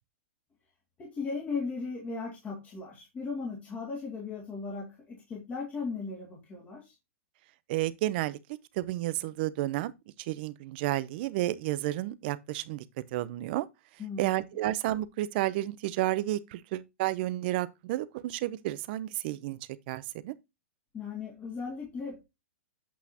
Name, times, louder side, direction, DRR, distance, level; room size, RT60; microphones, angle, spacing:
voice 1, 1.0-6.9 14.0-14.4 20.9-22.2, left 4 dB, 20° left, 2.3 m, -37 dB
voice 2, 7.7-8.4 8.7-9.9 10.2-12.8 13.1-13.7 14.2-20.3, right 15 dB, 50° right, 0.7 m, -31 dB
8.5 x 5.7 x 2.9 m
hypercardioid pair, 140°, 7 cm